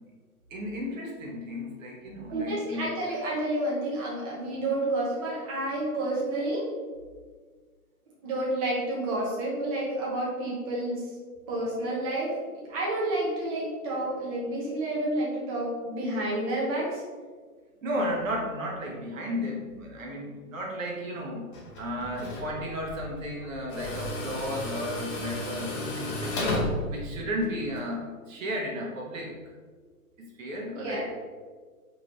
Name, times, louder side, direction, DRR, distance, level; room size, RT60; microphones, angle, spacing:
voice 1, 0.5-3.0 17.8-29.3 30.2-31.2, equal, 60° right, -1 dB, 0.9 m, -34 dB
voice 2, 2.3-6.7 8.2-11.0 11.5-12.3 12.7-17.0 30.7-31.1, right 1 dB, 25° right, -6 dB, 0.6 m, -30 dB
Tools, 21.5-27.8, left 2 dB, 35° left, 0.7 m, -34 dB
2.9 x 2.9 x 2.5 m, 1.5 s
hypercardioid pair, 135°, 44 cm